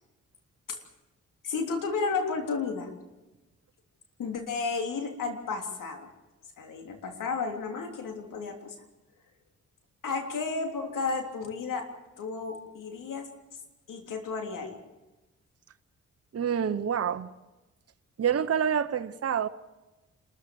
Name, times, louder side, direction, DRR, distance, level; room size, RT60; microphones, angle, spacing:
voice 1, 1.4-2.9 4.2-6.1 6.6-8.7 10.0-11.9 12.2-13.3 13.9-14.8, left 4 dB, 75° left, 3.4 m, -32 dB
voice 2, 16.3-17.3 18.2-19.5, right 8 dB, 50° right, 1.0 m, -27 dB
27.5 x 14.0 x 7.7 m
supercardioid pair, 50°, 32 cm